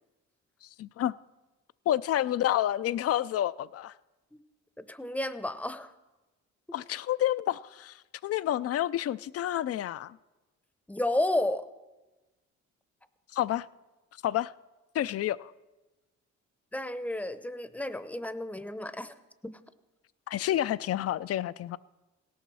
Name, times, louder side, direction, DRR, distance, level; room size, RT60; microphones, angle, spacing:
voice 1, 0.6-1.1 1.9-3.9 6.7-10.2 13.3-13.7 14.2-14.5 14.9-15.5 20.3-21.8, left 12 dB, 50° left, 18 dB, 0.4 m, -29 dB
voice 2, 4.8-5.9 10.9-11.7 16.7-19.1 19.4-19.5, left 1 dB, 5° left, 12 dB, 0.7 m, -32 dB
17.5 x 7.0 x 6.2 m, 1.1 s
cardioid pair, 90°, 30 cm